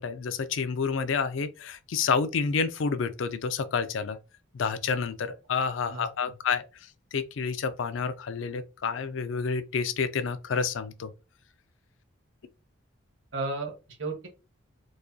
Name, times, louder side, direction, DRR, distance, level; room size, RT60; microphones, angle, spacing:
voice 1, 0.0-4.2 4.5-6.6 7.1-11.1, left 5 dB, 70° left, 0.4 m, -29 dB
voice 2, 5.9-6.3 13.3-14.3, right 3 dB, 70° right, 1.2 m, -34 dB
4.7 x 2.2 x 2.7 m
head